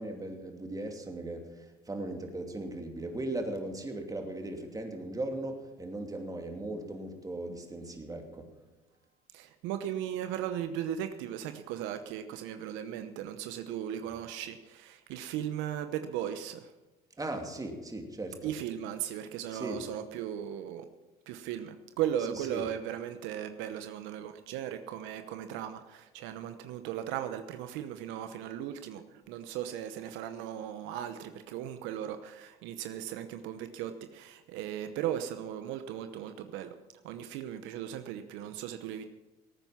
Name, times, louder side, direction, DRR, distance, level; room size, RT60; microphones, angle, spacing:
voice 1, 0.0-8.5 17.2-18.5 19.5-19.8 22.5-22.6, right 2 dB, 20° right, 4 dB, 2.7 m, -38 dB
voice 2, 9.3-16.7 18.4-20.9 21.3-36.7 37.0-39.0, right 10 dB, 75° right, 9 dB, 0.9 m, -37 dB
18.0 x 9.3 x 5.9 m, 1.1 s
supercardioid pair, 85°, 20 cm